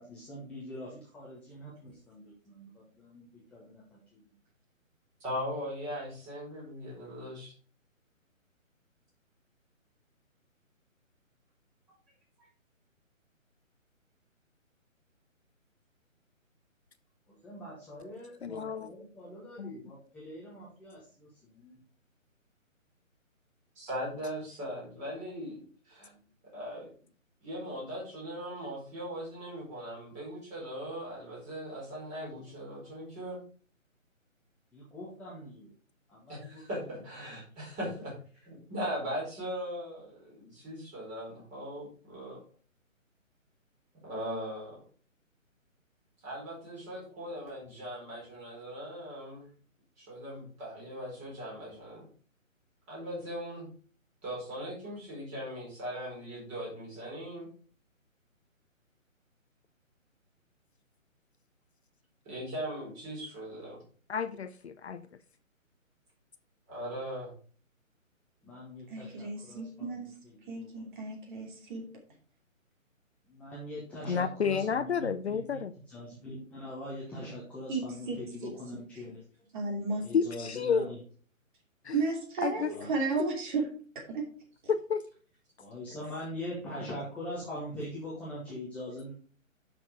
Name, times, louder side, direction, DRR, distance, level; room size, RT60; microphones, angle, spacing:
voice 1, 0.0-4.3 17.3-21.8 26.0-26.3 32.4-32.6 34.7-35.7 36.1-36.9 37.4-37.5 68.4-71.0 71.4-71.5 73.3-79.5 80.0-81.0 82.5-82.9 85.6-89.1, left 1 dB, 5° left, -7 dB, 1.0 m, -43 dB
voice 2, 5.2-7.5 23.7-26.1 26.5-26.9 27.4-33.4 36.3-38.1 38.4-42.4 44.0-44.8 46.2-49.5 50.0-52.1 52.9-53.7 54.2-57.5 62.2-63.8 66.7-67.3, equal, 15° right, -4 dB, 4.6 m, -39 dB
voice 3, 18.4-18.9 19.6-19.7 64.1-65.1 74.1-75.7 80.1-80.9 81.8-82.0 82.4-82.7 83.2-83.3 84.7-85.0, left 6 dB, 55° left, 11 dB, 0.6 m, -30 dB
voice 4, 68.9-70.1 70.5-71.9 77.7-78.5 79.5-80.0 81.9-83.7 83.9-84.3, right 3 dB, 35° right, 1 dB, 2.8 m, -33 dB
7.5 x 6.1 x 4.8 m, 0.42 s
figure-of-eight pair, 150°, 40 cm